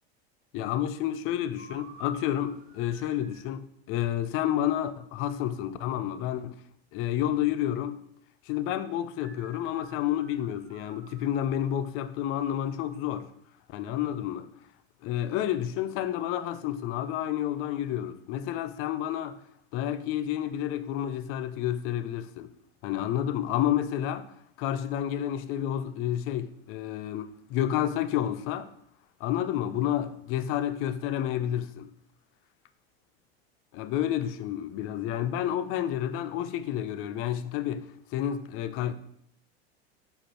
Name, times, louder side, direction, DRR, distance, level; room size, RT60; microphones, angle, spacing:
voice 1, 0.5-6.6 6.9-8.0 8.5-13.3 13.7-14.5 15.0-19.4 19.7-22.5 22.8-24.3 24.6-28.7 29.2-31.9 33.7-38.9, left 11 dB, 45° left, 0.4 m, -30 dB
sound 1, 1.6-3.5 9.2-11.9, right 3 dB, 80° right, 0.9 m, -53 dB
5.0 x 2.5 x 4.2 m
hypercardioid pair, 100°, 32 cm